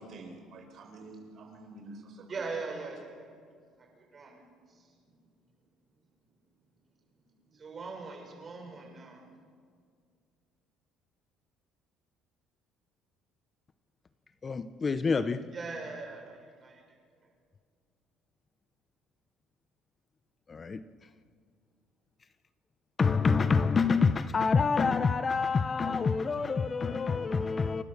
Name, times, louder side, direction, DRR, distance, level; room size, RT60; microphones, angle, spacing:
voice 1, 0.0-2.4 2.7-3.2, right 2 dB, 45° right, 5.4 m, -48 dB
voice 2, 2.3-3.3 4.1-4.4 7.6-9.2 15.5-16.7, right 4 dB, 25° right, 6.3 m, -40 dB
voice 3, 14.4-15.5 20.5-20.8 23.0-27.8, left 5 dB, 25° left, 0.7 m, -27 dB
29.0 x 21.0 x 7.2 m
cardioid pair, 150°, 0 cm